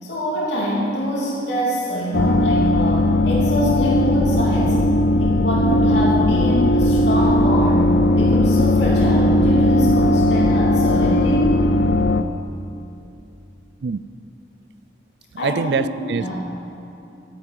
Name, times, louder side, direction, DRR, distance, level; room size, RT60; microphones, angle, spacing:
voice 1, 0.0-4.8 5.2-11.5 15.4-15.9 16.2-16.4, equal, 75° left, -6 dB, 3.0 m, -24 dB
sound 1, 2.1-12.2, left 1 dB, 60° left, 0.6 m, -17 dB
voice 2, 15.4-16.4, right 5 dB, 65° right, 15 dB, 0.4 m, -24 dB
13.0 x 10.0 x 7.5 m, 2.8 s
head